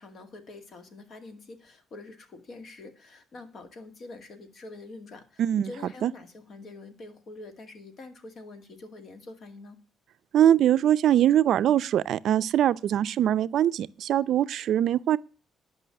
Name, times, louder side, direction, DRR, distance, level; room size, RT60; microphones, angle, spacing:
voice 1, 0.0-9.8, left 2 dB, 55° left, 2.2 m, -45 dB
voice 2, 5.4-5.7 6.0-6.1 10.3-15.2, right 11 dB, 70° right, 0.5 m, -22 dB
11.0 x 5.6 x 8.8 m
cardioid pair, 105°, 0 cm